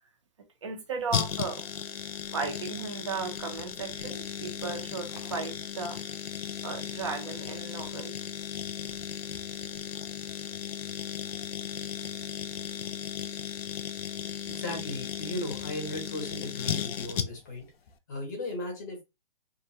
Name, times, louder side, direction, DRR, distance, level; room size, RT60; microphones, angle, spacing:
voice 1, 0.6-1.6 2.3-6.0 6.6-8.1, right 4 dB, 30° right, 0.5 m, -35 dB
sound 1, 1.1-17.6 17.9-18.0, left 9 dB, 90° left, 0.5 m, -36 dB
voice 2, 14.4-17.6 18.1-19.0, left 1 dB, 20° left, 0.7 m, -36 dB
2.7 x 2.2 x 2.6 m
hypercardioid pair, 165°, 29 cm